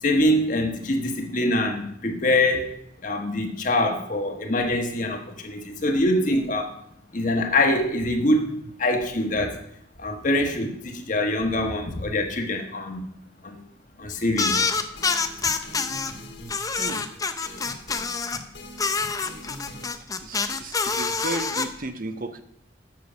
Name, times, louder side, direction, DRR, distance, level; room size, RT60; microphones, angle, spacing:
voice 1, 0.0-2.7 3.0-6.7 7.1-9.6 10.0-13.1 13.4-13.6 14.0-14.6, left 1 dB, 40° left, 4 dB, 1.3 m, -24 dB
sound 1, 14.4-16.1 16.5-18.4 18.8-21.7, left 4 dB, 20° left, 0.5 m, -26 dB
sound 2, 14.8-19.9, left 2 dB, 60° left, 1.9 m, -42 dB
voice 2, 20.2-22.4, right 2 dB, 45° right, 9 dB, 0.7 m, -34 dB
7.8 x 6.6 x 6.8 m, 0.72 s
head